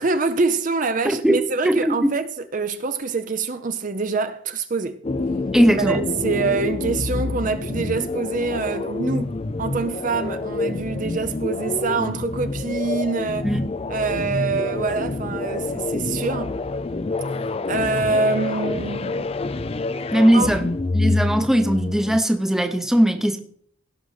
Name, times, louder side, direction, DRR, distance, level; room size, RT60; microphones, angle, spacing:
voice 1, 0.0-5.0 5.8-9.3 9.6-13.5 13.9-16.6 17.7-19.3 20.3-20.5, right 4 dB, 40° right, 0.6 m, -25 dB
voice 2, 1.0-1.9 5.5-6.0 13.4-13.6 20.1-20.7 20.9-23.4, right 1 dB, ahead, 0.8 m, -19 dB
sound 1, 5.0-22.2, left 3 dB, 30° left, 0.4 m, -27 dB
16.5 x 6.2 x 4.0 m
head